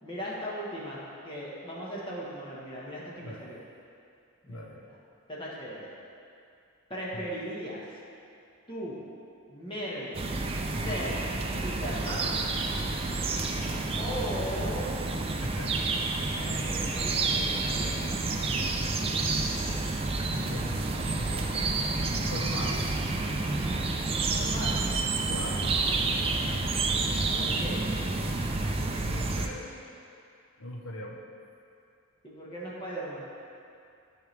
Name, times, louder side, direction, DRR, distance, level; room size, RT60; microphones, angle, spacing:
voice 1, 0.0-3.6 4.4-5.0 5.3-5.9 6.9-7.8 8.7-9.0 9.5-10.3 10.6-12.4 13.9-15.0 16.4-18.2 22.6-22.8 24.2-24.9 27.4-27.8 32.2-33.3, equal, 25° left, -6 dB, 1.4 m, -38 dB
voice 2, 4.5-4.8 7.1-7.2 10.7-11.0 15.4-15.7 20.3-21.8 22.2-22.9 24.2-24.3 25.3-25.9 29.0-29.8 30.6-31.3, left 1 dB, 75° left, -1 dB, 1.0 m, -40 dB
sound 1, 10.1-29.5, right 3 dB, 25° right, 0.4 m, -29 dB
12.5 x 4.7 x 3.4 m, 2.5 s
head